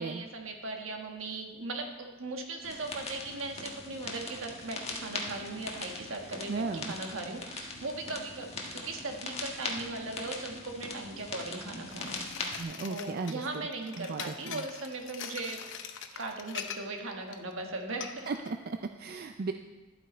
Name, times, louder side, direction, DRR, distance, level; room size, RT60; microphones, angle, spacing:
voice 1, 0.0-12.2 12.5-15.6 16.2-18.3, right 2 dB, 80° right, 3 dB, 1.4 m, -38 dB
sound 1, 2.6-12.6, left 3 dB, 30° left, 1.4 m, -40 dB
voice 2, 6.5-6.9 12.6-13.7 14.0-14.6 18.3-19.5, right 4 dB, 50° right, 6 dB, 0.4 m, -36 dB
sound 2, 11.9-17.0 17.3-17.5 18.0-18.5, left 8 dB, 65° left, 0.8 m, -43 dB
12.0 x 8.1 x 4.4 m, 1.2 s
head